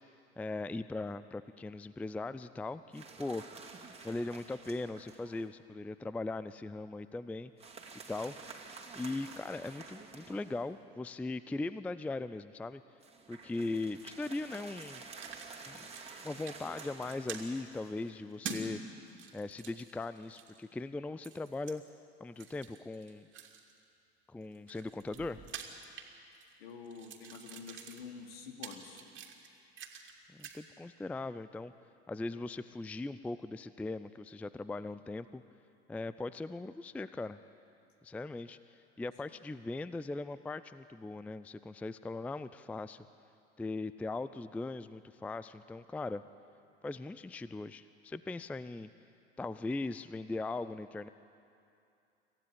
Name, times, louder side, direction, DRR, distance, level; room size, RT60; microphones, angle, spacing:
voice 1, 0.4-3.4 4.0-7.5 8.1-8.3 9.0-12.8 13.3-15.1 15.6-15.9 16.2-18.8 19.3-21.8 22.2-23.3 24.3-25.4 30.3-31.7 32.1-35.4 35.9-37.4 38.0-43.1 43.6-46.2 46.8-48.9 49.4-51.1, left 2 dB, 5° left, 15 dB, 0.4 m, -39 dB
sound 1, 2.9-5.5 7.6-10.8 13.0-18.4, right 4 dB, 20° right, 2.6 m, -50 dB
sound 2, 14.5-15.5 15.8-16.2 16.5-17.5 18.4-18.7 19.1-20.6 21.2-21.8 22.4-23.8 24.4-26.6 26.9-30.1 30.4-30.6, right 6 dB, 35° right, 2.6 m, -47 dB
voice 2, 26.6-29.0, left 5 dB, 70° left, 3 dB, 2.7 m, -47 dB
26.5 x 15.0 x 8.4 m, 2.6 s
figure-of-eight pair, 70°, 32 cm